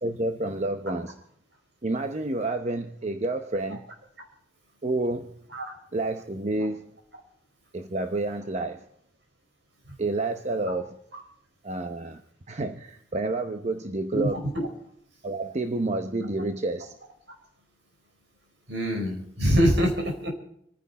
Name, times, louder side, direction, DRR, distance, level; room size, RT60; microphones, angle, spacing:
voice 1, 0.0-1.2 1.8-3.8 4.8-5.4 5.9-6.9 7.7-8.9 10.0-11.0 11.6-12.2 12.5-14.4 15.2-17.0, right 2 dB, 40° right, 0.8 m, -29 dB
voice 2, 18.7-20.3, equal, 70° right, 4.3 m, -24 dB
28.5 x 10.0 x 4.2 m
head